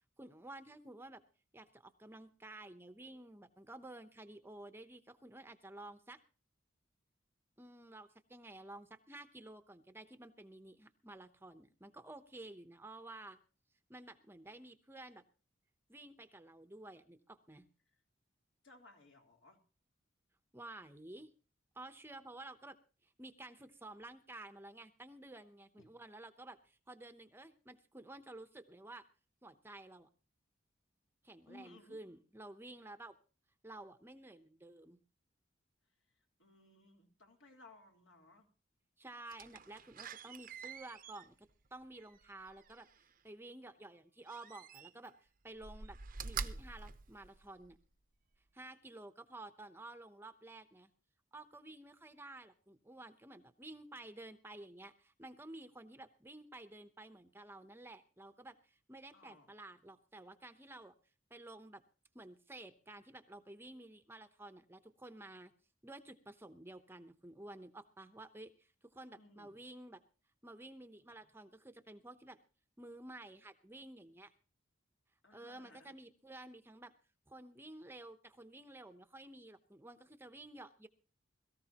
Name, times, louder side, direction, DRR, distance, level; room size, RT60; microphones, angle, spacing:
voice 1, 0.2-1.2 1.5-6.2 7.6-13.4 13.9-15.2 15.9-17.7 20.5-21.3 21.7-22.8 23.0-29.0 29.4-30.1 31.2-33.1 33.6-35.0 39.0-46.0 46.2-47.8 48.5-50.9 51.3-60.9 61.3-61.8 62.1-65.5 65.8-70.0 70.4-72.4 72.8-74.3 75.3-76.9 77.3-80.9, right 2 dB, 10° right, 9 dB, 0.8 m, -52 dB
voice 2, 18.6-19.6 25.8-25.9 31.5-32.0 36.4-38.5 59.1-59.5 69.1-69.6 75.2-75.9, left 2 dB, 75° left, 1 dB, 3.5 m, -60 dB
Slam, 39.3-43.1 44.2-45.2 45.5-47.8 48.3-48.4, right 5 dB, 45° right, 0.7 m, -47 dB
21.5 x 14.0 x 2.9 m, 0.37 s
head